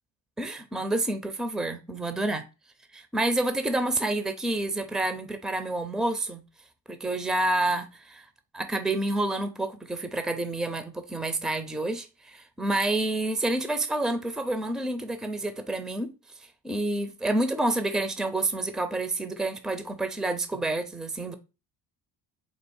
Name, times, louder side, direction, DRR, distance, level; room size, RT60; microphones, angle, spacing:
voice 1, 0.4-2.4 2.9-6.4 6.9-8.3 8.5-16.1 16.4-21.3, right 2 dB, ahead, 0.7 m, -28 dB
4.6 x 2.5 x 4.2 m
supercardioid pair, 65°, 45 cm